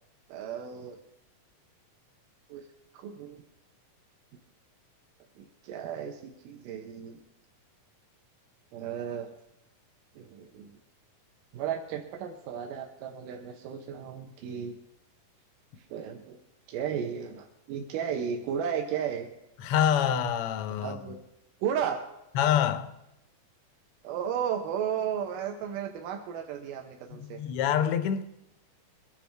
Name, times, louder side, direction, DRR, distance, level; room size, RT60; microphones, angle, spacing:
voice 1, 0.3-1.0 2.5-2.6 2.9-3.4 5.4-7.2 8.7-9.3 10.2-10.7 11.5-14.7 15.9-16.4 16.7-19.3 20.7-21.2 21.6-22.0 24.0-27.4, right 8 dB, 90° right, 2.6 m, -34 dB
voice 2, 19.6-21.2 22.3-22.9 27.1-28.2, left 9 dB, 85° left, 1.3 m, -26 dB
22.5 x 10.0 x 3.4 m
omnidirectional pair, 3.7 m